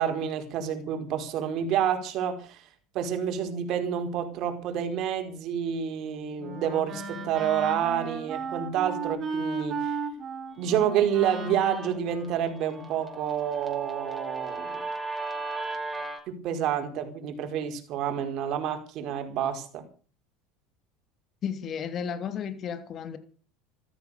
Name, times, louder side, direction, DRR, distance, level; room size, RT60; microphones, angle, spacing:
voice 1, 0.0-2.6 2.9-10.0 10.6-14.8 16.3-19.8, right 9 dB, 55° right, 4.9 m, -29 dB
Wind instrument woodwind instrument, 5.9-13.0, right 4 dB, 35° right, 7.4 m, -35 dB
Guitar, 10.7-16.2, right 3 dB, 10° right, 5.8 m, -37 dB
voice 2, 21.4-23.2, left 7 dB, 40° left, 3.0 m, -33 dB
14.5 x 14.0 x 7.0 m
supercardioid pair, 105°, 0 cm